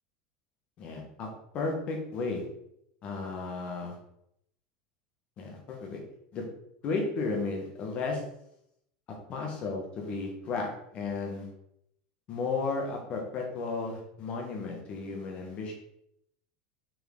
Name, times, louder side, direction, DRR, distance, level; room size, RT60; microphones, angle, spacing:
voice 1, 0.8-1.3 1.5-2.4 3.0-3.9 5.4-6.0 6.3-6.4 6.8-8.2 9.3-11.5 12.3-15.7, left 3 dB, 35° left, 0 dB, 1.6 m, -34 dB
6.7 x 4.6 x 3.9 m, 0.76 s
supercardioid pair, 165°, 4 cm